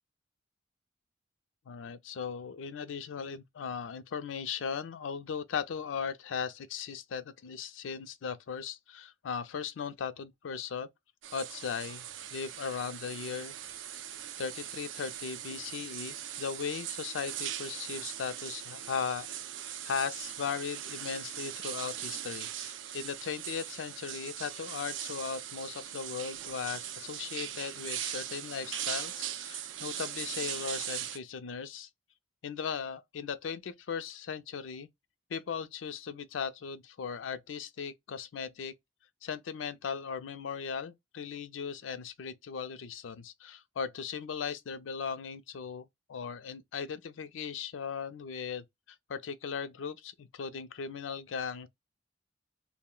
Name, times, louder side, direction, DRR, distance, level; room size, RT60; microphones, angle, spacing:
voice 1, 1.7-10.9 11.3-12.1 12.3-13.6 14.4-19.3 19.6-31.9 32.4-34.9 35.3-38.7 39.2-48.6 49.1-51.7, left 6 dB, 90° left, 0.4 m, -38 dB
sound 1, 11.2-31.2, right 10 dB, 80° right, 0.4 m, -40 dB
2.4 x 2.0 x 3.6 m
head